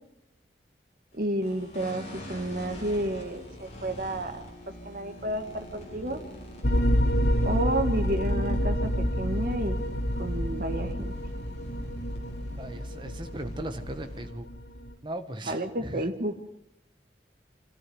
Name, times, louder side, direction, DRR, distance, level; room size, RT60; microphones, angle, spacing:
sound 1, 1.1-14.3, equal, 40° left, 5.7 m, -45 dB
voice 1, 1.2-4.4 4.8-6.2 7.4-9.8 10.2-11.1 15.5-16.4, right 1 dB, 50° right, 4 dB, 1.8 m, -31 dB
sound 2, 6.6-14.9, equal, 80° left, 2.7 m, -28 dB
voice 2, 12.6-14.5 15.0-16.1, right 1 dB, 25° right, 7 dB, 1.6 m, -38 dB
25.5 x 13.5 x 9.5 m, 0.83 s
head